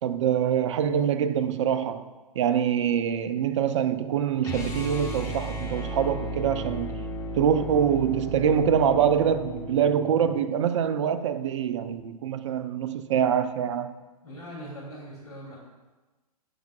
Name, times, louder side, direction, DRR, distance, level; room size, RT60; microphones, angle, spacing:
voice 1, 0.0-2.1 2.4-7.0 7.4-14.0, right 8 dB, 50° right, 12 dB, 0.6 m, -25 dB
sound 1, 4.4-10.5, equal, 15° left, 1.4 m, -35 dB
voice 2, 14.2-15.6, equal, 80° left, -4 dB, 3.0 m, -41 dB
16.5 x 5.8 x 2.4 m, 1.2 s
figure-of-eight pair, 115°, 20 cm